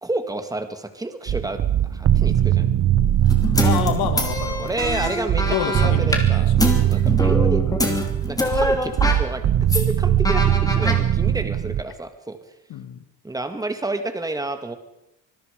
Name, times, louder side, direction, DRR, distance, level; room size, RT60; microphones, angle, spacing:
voice 1, 0.0-1.6 1.9-2.7 4.6-7.6 7.9-12.4 13.2-14.8, right 2 dB, 10° right, 8 dB, 2.0 m, -30 dB
sound 1, 1.3-11.8, right 11 dB, 45° right, 0.9 m, -21 dB
sound 2, 3.2-6.2 6.6-9.2 9.6-9.9 10.3-11.0, left 1 dB, 10° left, 2.8 m, -25 dB
voice 2, 3.6-6.7 12.7-13.0, left 10 dB, 85° left, 9 dB, 2.4 m, -29 dB
25.5 x 20.0 x 5.2 m, 0.86 s
cardioid pair, 155°, 36 cm